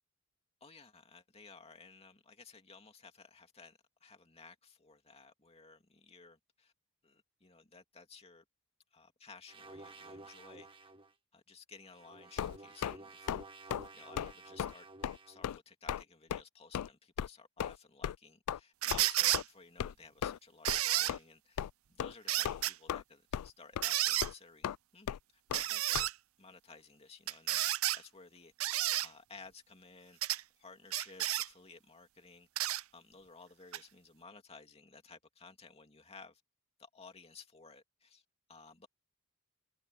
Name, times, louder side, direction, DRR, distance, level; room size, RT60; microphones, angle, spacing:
voice 1, 0.6-6.7 7.0-8.4 8.9-10.9 11.3-14.9 15.3-24.7 24.9-25.2 25.5-26.1 26.4-30.2 30.6-36.4 36.8-38.2 38.5-38.9, left 4 dB, 25° left, 2.6 m, -56 dB
sound 1, 9.5-11.1 11.8-15.5, right 2 dB, 25° right, 1.8 m, -52 dB
sound 2, 12.4-13.0 13.3-13.4 13.7-13.9 14.2-14.3 14.6-14.7 15.0-15.2 15.4-15.6 15.9-16.0 16.3-16.4 16.7-16.9 17.2-17.3 17.6-17.8 18.0-18.2 18.5-18.6 18.9-19.0 19.3-19.4 19.8-19.9 20.2-20.4 20.7-20.8 21.1-21.2 21.6-21.7 22.0-22.1 22.4-23.0 23.3-23.5 23.8-23.9 24.2-24.3 24.6-24.8 25.1-25.2 25.5-25.6 25.9-26.1, left 9 dB, 85° left, 0.3 m, -36 dB
sound 3, 18.8-19.4 20.7-21.1 22.3-22.7 23.8-24.3 25.5-26.1 27.3-28.0 28.6-29.1 30.2-30.4 30.9-31.5 32.6-32.8 33.7-33.8, right 15 dB, 65° right, 0.6 m, -31 dB
head